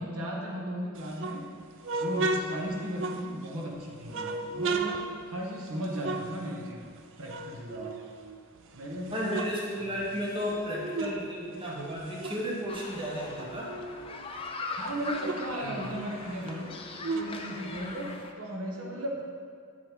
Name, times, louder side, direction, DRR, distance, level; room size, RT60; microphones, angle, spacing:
voice 1, 0.0-1.5 1.9-6.9 7.2-8.0 8.7-9.5 9.8-10.1 13.9-14.4 14.8-16.8 17.1-18.1 18.4-19.4, equal, 80° right, -2 dB, 1.3 m, -36 dB
sound 1, 1.0-3.6 4.1-7.0 7.2-8.6 9.0-11.2 11.5-14.1 14.5-14.6 14.8-18.2, right 3 dB, 60° right, 0.5 m, -35 dB
voice 2, 9.1-13.6 15.6-15.8, equal, 25° right, -4 dB, 1.1 m, -33 dB
sound 2, 12.7-18.3, left 3 dB, 25° left, 0.5 m, -40 dB
8.3 x 5.9 x 3.7 m, 2.2 s
head